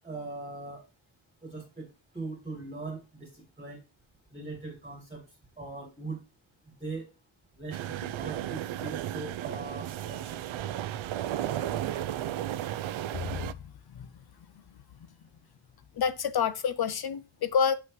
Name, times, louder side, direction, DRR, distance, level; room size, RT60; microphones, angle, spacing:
voice 1, 0.0-0.8 1.4-1.9 2.1-3.8 4.3-5.2 5.6-6.2 6.8-7.1 7.6-10.4, right 3 dB, 15° right, 1.8 m, -40 dB
sound 1, 7.7-13.5, right 12 dB, 75° right, 0.6 m, -34 dB
voice 2, 16.0-17.7, left 7 dB, 55° left, 0.6 m, -27 dB
7.7 x 5.8 x 3.1 m
wide cardioid pair, 170°, 47 cm